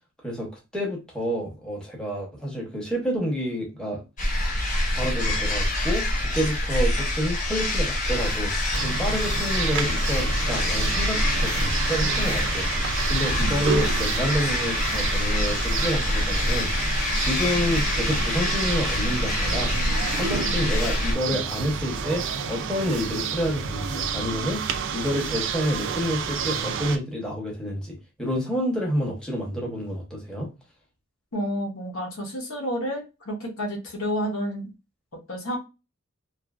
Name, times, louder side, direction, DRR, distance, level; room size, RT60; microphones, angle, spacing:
voice 1, 0.2-4.0 4.9-6.1 6.3-8.5 8.8-12.7 13.1-24.7 24.9-30.5, equal, 5° left, -3 dB, 0.8 m, -29 dB
sound 1, 4.2-21.1, left 1 dB, 40° left, 1.0 m, -25 dB
sound 2, 8.7-27.0, right 6 dB, 60° right, 0.4 m, -30 dB
voice 2, 31.3-34.7 35.3-35.6, equal, 70° left, 1 dB, 0.9 m, -30 dB
2.7 x 2.5 x 2.3 m, 0.27 s
head